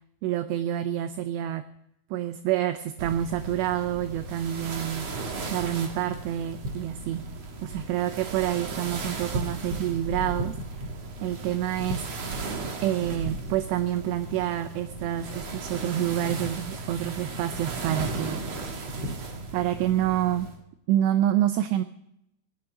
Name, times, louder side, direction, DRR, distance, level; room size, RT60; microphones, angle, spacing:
voice 1, 0.2-1.6 2.1-7.2 7.6-10.6 11.2-12.0 12.8-19.0 19.5-20.5 20.9-21.8, right 12 dB, 80° right, 10 dB, 2.7 m, -28 dB
sound 1, 3.0-20.6, right 2 dB, 50° right, 2.0 m, -35 dB
18.0 x 12.5 x 5.1 m, 0.78 s
omnidirectional pair, 5.4 m